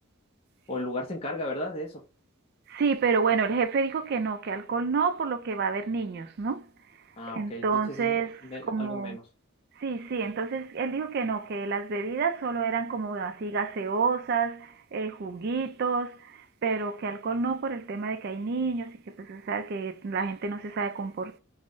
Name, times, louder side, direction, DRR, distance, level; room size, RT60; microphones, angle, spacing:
voice 1, 0.7-2.0 7.2-8.2 8.4-9.2, left 1 dB, 30° left, 0.5 m, -35 dB
voice 2, 2.7-6.7 7.3-9.2 9.8-21.4, right 5 dB, 50° right, 0.3 m, -29 dB
2.5 x 2.0 x 3.6 m
head